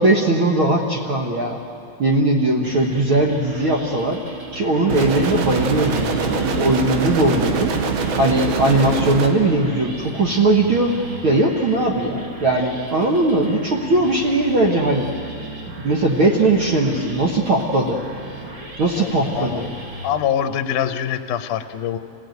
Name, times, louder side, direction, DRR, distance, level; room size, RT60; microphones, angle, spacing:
voice 1, 0.0-1.6 2.0-4.2 4.5-7.7 8.2-10.9 11.2-15.1 15.8-18.0 18.8-19.7, right 2 dB, 55° right, 0 dB, 1.6 m, -19 dB
sound 1, 2.6-20.1, right 1 dB, 35° right, 2.6 m, -37 dB
sound 2, 4.9-9.3, right 5 dB, 85° right, 3.1 m, -23 dB
voice 2, 19.0-19.6 20.0-22.0, left 9 dB, 75° left, 7 dB, 2.1 m, -24 dB
27.0 x 17.5 x 9.2 m, 2.8 s
omnidirectional pair, 4.0 m